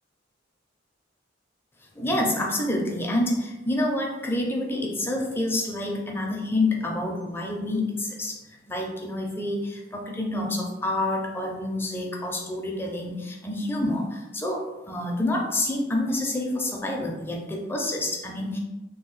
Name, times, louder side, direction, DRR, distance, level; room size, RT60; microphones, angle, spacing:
voice 1, 1.9-8.4 8.7-18.6, left 1 dB, 10° left, 0 dB, 0.5 m, -28 dB
2.9 x 2.2 x 3.8 m, 1.0 s
head